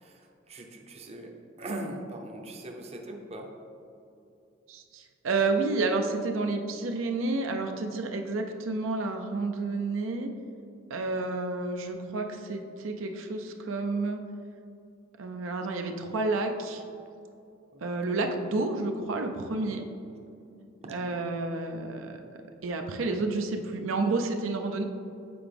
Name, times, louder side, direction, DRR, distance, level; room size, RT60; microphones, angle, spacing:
voice 1, 0.0-1.3 1.6-3.5 17.7-17.8 18.1-18.4 20.8-21.0, right 1 dB, 30° right, 2 dB, 0.6 m, -40 dB
voice 2, 4.7-10.3 10.9-14.2 15.2-16.8 17.8-19.8 20.9-24.8, right 3 dB, 80° right, 4 dB, 0.5 m, -30 dB
7.8 x 4.8 x 3.4 m, 2.6 s
head